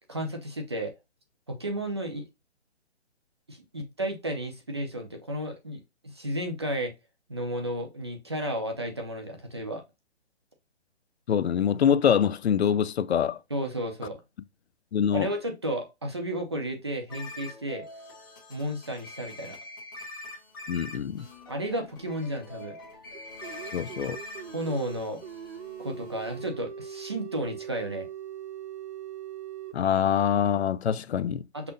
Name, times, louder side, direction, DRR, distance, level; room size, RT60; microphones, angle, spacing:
voice 1, 0.1-0.9 1.5-2.2 3.5-6.9 7.3-9.8 13.5-14.2 15.1-17.9 18.5-19.6 21.5-22.8 24.5-25.2 25.8-28.1 31.5-31.7, right 1 dB, 25° right, 0.6 m, -33 dB
voice 2, 11.3-13.4 14.9-15.3 20.7-21.3 23.7-24.2 29.7-31.4, left 8 dB, 70° left, 0.5 m, -24 dB
sound 1, 17.1-26.5, left 2 dB, 20° left, 0.9 m, -44 dB
sound 2, 23.1-29.7, right 9 dB, 75° right, 1.1 m, -41 dB
5.7 x 2.1 x 3.8 m
hypercardioid pair, 175°, 33 cm